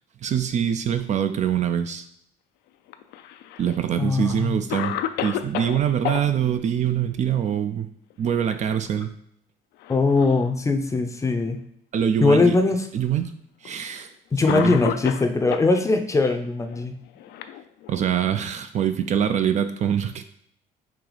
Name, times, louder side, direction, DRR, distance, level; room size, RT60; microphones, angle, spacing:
voice 1, 0.2-2.1 3.6-7.9 8.2-9.1 11.9-12.6 12.9-13.3 13.6-14.1 14.5-14.8 17.9-20.3, right 9 dB, 45° right, 9 dB, 0.4 m, -24 dB
Cough, 2.9-3.8 4.3-4.4 4.7-6.2 8.1-8.5 8.9-9.0 9.8-10.5 11.3-11.4 12.4-12.5 13.6-13.8 14.5-15.7 16.7-18.1, left 11 dB, 80° left, 0.4 m, -31 dB
voice 2, 4.0-4.7 9.9-11.6 12.2-12.9 14.3-17.0, left 3 dB, 20° left, 5 dB, 0.5 m, -21 dB
4.7 x 2.9 x 3.9 m, 0.71 s
cardioid pair, 110°, 17 cm